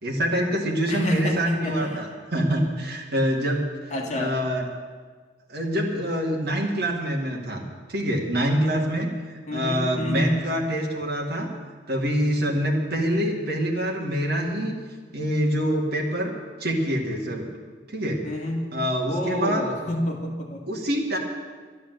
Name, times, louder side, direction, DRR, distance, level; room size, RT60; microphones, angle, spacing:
voice 1, 0.0-3.7 4.1-4.6 5.5-7.6 7.9-11.5 11.9-14.7 15.1-16.3 16.6-17.4 17.9-18.2 18.7-19.7 20.7-21.2, equal, 50° right, -1 dB, 2.1 m, -25 dB
voice 2, 0.9-2.0 3.9-4.3 9.5-10.4 18.2-18.7 19.1-20.6, left 1 dB, 35° left, 0 dB, 2.1 m, -28 dB
12.0 x 11.0 x 7.9 m, 1.5 s
head